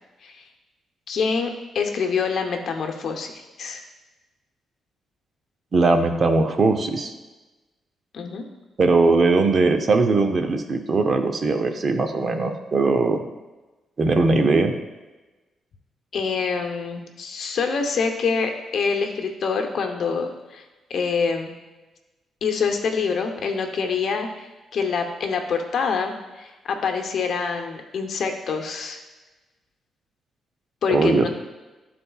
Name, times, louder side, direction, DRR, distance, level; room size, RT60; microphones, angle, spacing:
voice 1, 1.1-3.8 8.1-8.4 16.1-20.6 20.9-21.5 22.4-29.0 30.8-31.3, left 5 dB, 65° left, 5 dB, 0.8 m, -26 dB
voice 2, 5.7-7.1 8.8-13.2 14.0-14.7 30.9-31.3, right 3 dB, 45° right, 6 dB, 0.7 m, -20 dB
12.0 x 4.2 x 2.4 m, 1.1 s
cardioid pair, 85°, 0 cm